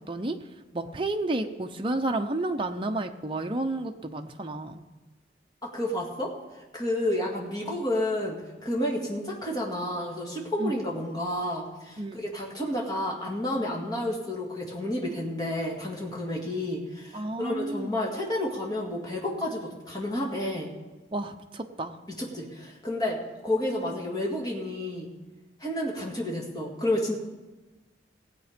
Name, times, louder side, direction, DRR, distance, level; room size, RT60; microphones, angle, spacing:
voice 1, 0.1-0.4 0.7-4.8 10.6-10.7 12.0-12.2 17.1-17.9 21.1-21.9, right 2 dB, 30° right, 5 dB, 0.7 m, -31 dB
voice 2, 5.6-6.3 6.7-20.7 22.1-25.1 25.6-27.2, left 1 dB, 20° left, -2 dB, 2.1 m, -30 dB
17.0 x 8.2 x 5.1 m, 1.2 s
head